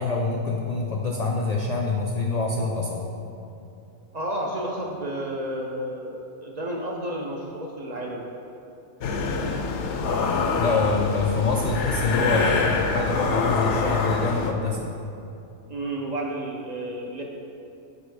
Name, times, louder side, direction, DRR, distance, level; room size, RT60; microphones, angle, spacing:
voice 1, 0.0-3.1 10.6-14.9, left 3 dB, 90° left, -1 dB, 0.3 m, -25 dB
voice 2, 4.1-8.3 13.8-13.9 15.7-17.2, right 1 dB, 50° right, -1 dB, 0.5 m, -31 dB
sound 1, 9.0-14.5, left 4 dB, 70° left, 0.8 m, -25 dB
7.0 x 4.1 x 4.7 m, 2.7 s
omnidirectional pair, 1.3 m